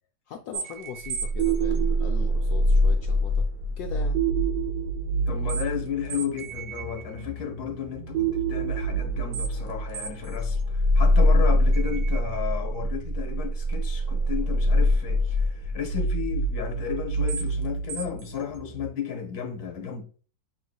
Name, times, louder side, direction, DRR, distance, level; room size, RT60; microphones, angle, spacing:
voice 1, 0.3-3.5 3.8-4.2, left 8 dB, 70° left, 1.0 m, -39 dB
sound 1, 0.5-18.9, equal, 85° right, 1.6 m, -25 dB
voice 2, 5.3-20.0, left 8 dB, 45° left, 1.0 m, -33 dB
5.9 x 3.2 x 2.3 m
omnidirectional pair, 1.9 m